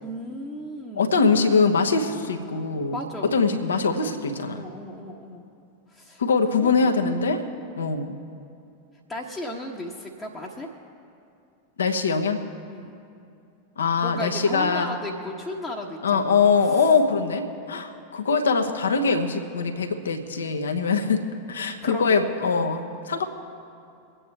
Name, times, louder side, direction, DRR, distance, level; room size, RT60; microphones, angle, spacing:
voice 1, 0.0-1.2 2.9-3.4 4.5-5.5 5.9-6.2 6.5-7.0 9.1-10.7 12.7-13.0 14.0-16.9 21.8-22.3, left 1 dB, 10° left, -4 dB, 1.2 m, -35 dB
voice 2, 1.0-2.9 3.3-4.6 6.2-7.4 7.8-8.2 11.8-12.4 13.8-14.9 16.0-23.2, left 4 dB, 70° left, 4 dB, 1.1 m, -23 dB
25.0 x 8.9 x 3.4 m, 2.5 s
figure-of-eight pair, 90°, 0 cm